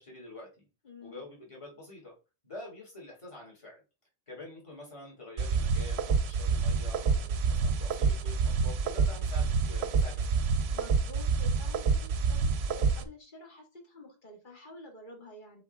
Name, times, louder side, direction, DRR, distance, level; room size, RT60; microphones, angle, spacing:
voice 1, 0.0-0.7 1.0-2.1 2.4-3.8 4.3-10.6, left 2 dB, 30° left, -2 dB, 2.6 m, -47 dB
voice 2, 0.8-1.2 10.7-15.6, left 2 dB, 50° left, 2 dB, 2.0 m, -49 dB
sound 1, 5.4-13.0, right 5 dB, 85° right, 0.9 m, -28 dB
7.0 x 4.3 x 3.5 m, 0.31 s
omnidirectional pair, 1.1 m